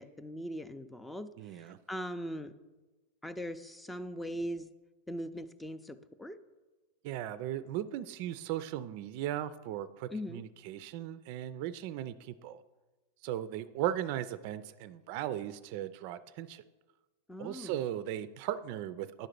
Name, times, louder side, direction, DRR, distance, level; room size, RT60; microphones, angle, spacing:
voice 1, 0.0-2.5 3.2-4.7 5.1-6.4 10.1-10.4 17.3-17.8, equal, 5° left, 11 dB, 0.5 m, -40 dB
voice 2, 1.4-1.8 7.0-12.6 13.2-16.6 17.4-19.3, right 12 dB, 55° right, 14 dB, 0.4 m, -37 dB
10.0 x 3.8 x 6.7 m, 1.2 s
hypercardioid pair, 115°, 0 cm